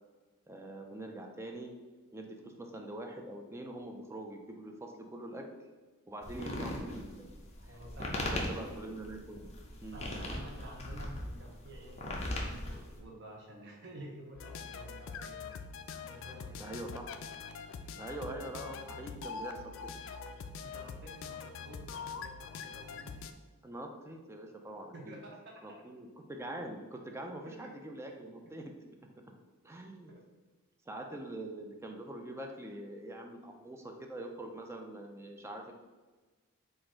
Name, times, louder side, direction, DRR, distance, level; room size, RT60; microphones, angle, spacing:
voice 1, 0.5-1.7 2.1-5.5 6.1-7.3 7.6-9.4 9.8-10.1 16.6-17.1 18.0-19.9 23.6-25.2 25.6-28.7 29.0-29.1 29.6-30.1 30.9-35.7, right 1 dB, 10° right, 3 dB, 0.4 m, -44 dB
sound 1, 6.2-13.0, left 1 dB, 30° left, 0.6 m, -39 dB
voice 2, 7.6-8.4 9.9-15.4 16.1-16.8 20.6-23.1 24.9-25.6 27.4-27.5 28.4-28.5 30.1-30.2, right 1 dB, 55° right, -1 dB, 0.6 m, -50 dB
sound 2, 14.4-23.3, left 5 dB, 60° left, 0.3 m, -44 dB
4.2 x 2.6 x 4.4 m, 1.3 s
head